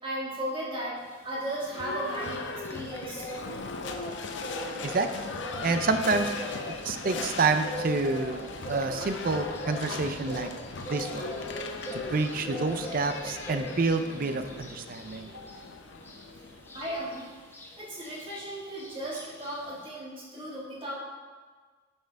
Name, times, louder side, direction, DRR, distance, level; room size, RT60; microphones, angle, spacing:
voice 1, 0.0-3.6 15.3-15.4 16.7-17.4 17.7-21.0, right 1 dB, 25° right, -5 dB, 1.7 m, -36 dB
sound 1, 1.1-19.9, left 1 dB, 10° left, 0.8 m, -41 dB
Livestock farm animals working animals / Bell, 1.6-17.5, left 4 dB, 65° left, 0.6 m, -39 dB
voice 2, 5.6-6.3 6.8-8.4 8.7-10.5 10.9-11.3 11.9-15.3, right 3 dB, 45° right, 8 dB, 0.5 m, -28 dB
8.2 x 4.4 x 4.5 m, 1.5 s
head